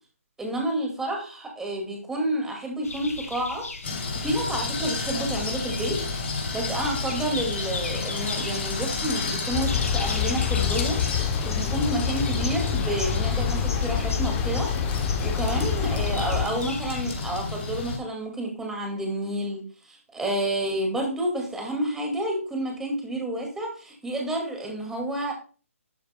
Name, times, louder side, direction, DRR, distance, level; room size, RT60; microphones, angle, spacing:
voice 1, 0.4-3.7 4.2-6.0 6.5-11.0 11.4-14.7 15.2-25.3, right 1 dB, 5° right, 1 dB, 2.1 m, -29 dB
sound 1, 2.8-17.3, left 3 dB, 80° left, 2.3 m, -39 dB
sound 2, 3.8-18.0, left 3 dB, 50° left, 3.0 m, -31 dB
sound 3, 9.5-16.4, left 8 dB, 20° left, 0.7 m, -27 dB
12.0 x 7.9 x 2.2 m, 0.37 s
figure-of-eight pair, 145°, 8 cm